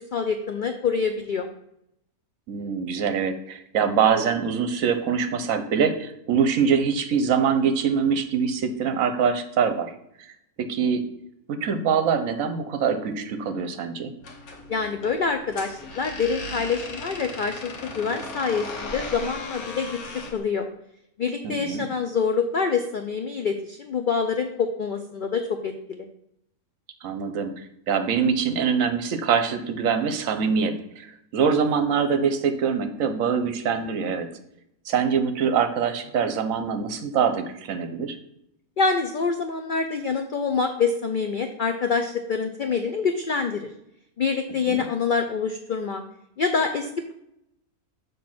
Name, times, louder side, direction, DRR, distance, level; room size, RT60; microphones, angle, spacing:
voice 1, 0.0-1.5 14.7-20.6 21.2-26.1 38.8-43.7 44.2-46.0 46.4-47.1, left 5 dB, 70° left, 6 dB, 0.4 m, -26 dB
voice 2, 2.5-9.9 10.6-11.0 11.5-14.1 21.4-21.9 27.0-27.5 27.9-34.3 34.9-38.2 44.6-44.8, right 6 dB, 75° right, 8 dB, 1.1 m, -24 dB
sound 1, 14.2-20.4, left 2 dB, 90° left, 1.5 m, -37 dB
6.8 x 3.2 x 5.9 m, 0.77 s
omnidirectional pair, 1.5 m